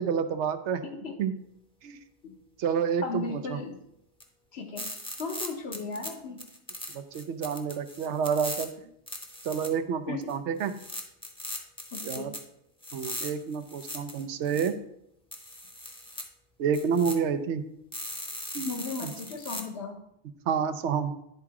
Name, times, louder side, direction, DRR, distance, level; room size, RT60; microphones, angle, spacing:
voice 1, 0.0-0.8 1.2-1.3 1.8-2.0 2.6-3.6 6.9-8.7 9.4-10.7 12.0-12.4 12.9-14.7 16.6-17.6 18.5-18.7 19.0-19.1 20.5-21.1, right 7 dB, 80° right, 10 dB, 0.9 m, -29 dB
voice 2, 0.8-1.2 2.2-2.4 3.0-3.8 4.5-4.9 5.2-6.4 10.1-10.3 11.9-12.3 18.6-20.0, left 4 dB, 65° left, 5 dB, 1.2 m, -36 dB
sound 1, 4.2-4.3 4.8-6.1 6.4-8.6 9.1-9.7 10.2-10.3 10.6-12.4 12.8-14.7 15.3-16.2 16.7-17.1 17.9-19.6, left 1 dB, 5° left, 0.8 m, -39 dB
10.5 x 3.7 x 4.7 m, 0.78 s
omnidirectional pair, 1.2 m